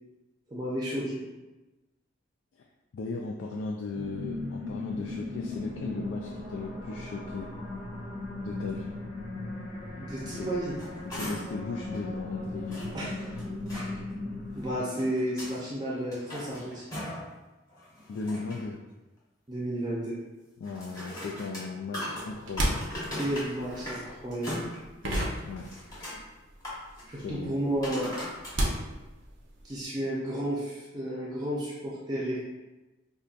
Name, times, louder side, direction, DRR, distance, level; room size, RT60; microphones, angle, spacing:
voice 1, 0.5-1.2 10.0-10.8 12.9-13.3 13.7-14.0 14.5-16.9 19.5-20.2 23.2-24.6 27.1-28.1 29.6-32.4, right 1 dB, 20° right, -6 dB, 0.6 m, -32 dB
voice 2, 2.9-7.5 8.4-8.9 10.4-10.5 11.2-12.9 18.1-18.8 20.6-22.9 25.0-26.1 27.2-27.5, left 3 dB, 80° left, 0 dB, 0.3 m, -37 dB
sound 1, 3.9-14.8, left 2 dB, 55° left, 1.4 m, -38 dB
sound 2, 10.5-11.6 11.9-12.0 12.7-13.9 14.6-15.6 16.0-17.3 17.7-18.7 20.6-24.0 24.3-25.3 25.6-26.2 26.6-27.1 27.8-28.5 29.2-29.3, left 1 dB, 20° left, 1.0 m, -39 dB
sound 3, 22.2-26.3 26.5-29.8, right 1 dB, 75° right, 0.6 m, -33 dB
5.3 x 2.2 x 2.4 m, 1.1 s
head